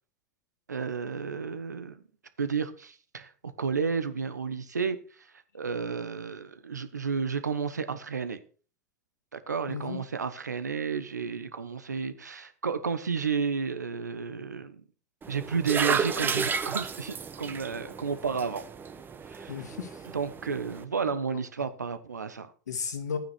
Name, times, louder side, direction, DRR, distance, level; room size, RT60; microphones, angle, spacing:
voice 1, 0.7-2.0 2.4-5.0 5.5-8.4 9.3-14.8 15.3-18.6 19.2-19.5 20.1-22.5, right 5 dB, 85° right, 1.1 m, -32 dB
voice 2, 9.7-10.0 19.5-20.1 21.3-21.7 22.7-23.2, left 6 dB, 80° left, 2.4 m, -35 dB
sound 1, 15.2-20.8, right 6 dB, 20° right, 1.1 m, -33 dB
11.5 x 9.4 x 4.5 m
figure-of-eight pair, 90°, 9 cm